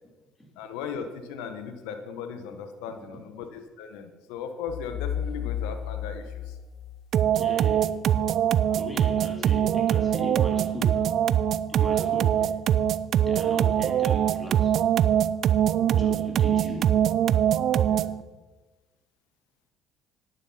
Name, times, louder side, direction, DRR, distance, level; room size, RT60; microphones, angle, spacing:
voice 1, 0.6-6.6 17.8-18.1, left 6 dB, 85° left, 1.1 m, -37 dB
sound 1, 4.7-7.5, left 9 dB, 60° left, 0.7 m, -33 dB
sound 2, 7.1-18.2, right 10 dB, 60° right, 0.4 m, -23 dB
voice 2, 7.3-8.0 8.7-11.1 11.7-12.6 13.3-14.8 15.9-16.9, left 1 dB, 15° left, 3.5 m, -39 dB
10.0 x 9.7 x 5.8 m
supercardioid pair, 80°, 0 cm